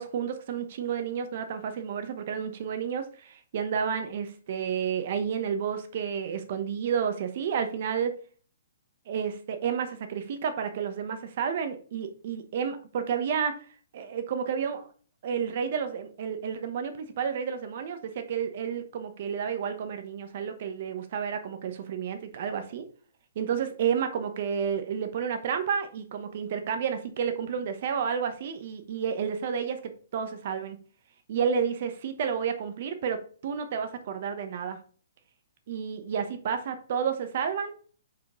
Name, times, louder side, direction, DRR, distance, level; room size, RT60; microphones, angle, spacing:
voice 1, 0.0-8.1 9.1-13.5 13.9-14.9 15.2-22.8 23.3-29.8 30.1-30.8 31.3-34.8 35.7-37.7, right 7 dB, 40° right, 8 dB, 1.0 m, -31 dB
5.2 x 4.8 x 3.8 m, 0.42 s
hypercardioid pair, 175°, 0 cm